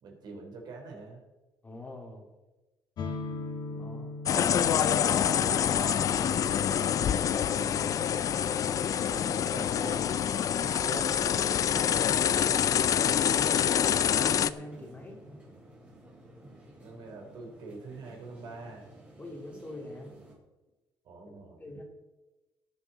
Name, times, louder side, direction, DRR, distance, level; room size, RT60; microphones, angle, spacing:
voice 1, 0.0-1.2 3.6-4.1 4.9-8.1 9.1-10.2 10.5-11.3 12.2-12.7 16.8-18.9 21.1-21.6, right 3 dB, 65° right, 1 dB, 3.3 m, -45 dB
voice 2, 1.6-2.3 3.8-4.1 14.1-15.2 19.2-20.1 21.3-21.4 21.6-21.8, left 1 dB, 20° left, 1 dB, 2.5 m, -44 dB
sound 1, 3.0-10.6, left 3 dB, 60° left, 2.0 m, -43 dB
sound 2, 4.2-14.5, left 9 dB, 45° left, 0.4 m, -26 dB
sound 3, 4.5-20.4, right 1 dB, 15° right, 3.1 m, -52 dB
18.5 x 7.4 x 4.0 m, 1.1 s
cardioid pair, 120°, 8 cm